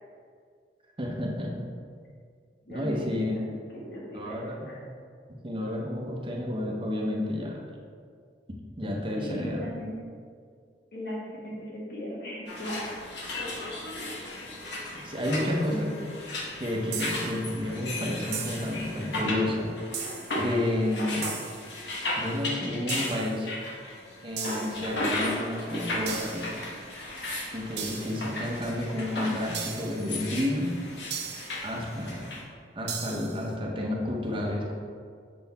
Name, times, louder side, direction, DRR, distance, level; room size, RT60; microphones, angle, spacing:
voice 1, 1.0-1.7 2.7-3.4 4.1-4.7 5.4-7.6 8.8-9.7 15.0-15.9 16.6-19.7 20.3-21.2 22.2-23.5 24.2-26.6 27.5-30.7 31.6-32.3 32.8-34.8, left 1 dB, 30° right, -1 dB, 0.8 m, -30 dB
voice 2, 2.6-3.4 3.7-4.4 4.7-4.8 9.2-9.9 10.9-11.2 11.5-13.0 15.7-16.0, left 1 dB, 60° left, -5 dB, 1.6 m, -37 dB
sound 1, 12.5-32.4, left 1 dB, 75° left, 1.2 m, -35 dB
sound 2, 16.9-17.4 18.3-18.8 19.9-20.4 21.2-21.7 22.9-23.4 24.4-24.9 26.0-26.6 27.8-28.3 29.5-30.1 31.1-31.6 32.9-33.4, right 7 dB, 65° right, 0.6 m, -37 dB
6.7 x 4.0 x 4.1 m, 2.1 s
head